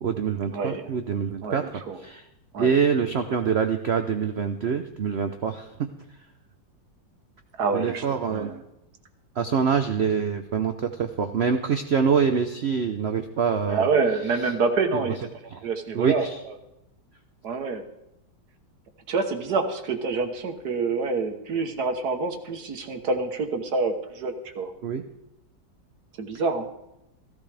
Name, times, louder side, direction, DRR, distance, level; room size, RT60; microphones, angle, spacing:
voice 1, 0.0-1.7 2.0-2.2 2.6-5.9 7.7-8.5 9.4-13.9 15.5-15.6 15.9-16.4 24.8-25.0, right 6 dB, 80° right, 7 dB, 0.5 m, -25 dB
voice 2, 0.5-0.9 1.4-2.0 2.5-2.7 7.6-8.6 13.7-15.2 15.6-16.5 17.4-17.8 19.1-24.7 26.2-26.7, right 4 dB, 60° right, 7 dB, 1.5 m, -27 dB
15.0 x 14.5 x 3.4 m, 0.88 s
omnidirectional pair, 2.0 m